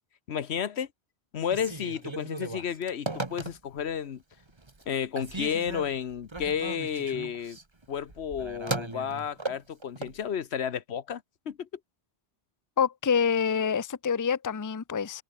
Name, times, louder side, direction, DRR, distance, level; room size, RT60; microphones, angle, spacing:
voice 1, 0.3-0.9 1.3-4.2 4.9-7.6 7.9-11.7, left 8 dB, 85° left, 1.3 m, -32 dB
Telephone, 1.4-3.9 4.4-4.9 5.2-10.2, right 2 dB, 25° right, 1.5 m, -37 dB
voice 2, 12.8-15.2, left 6 dB, 25° left, 0.5 m, -26 dB
omnidirectional pair, 1.1 m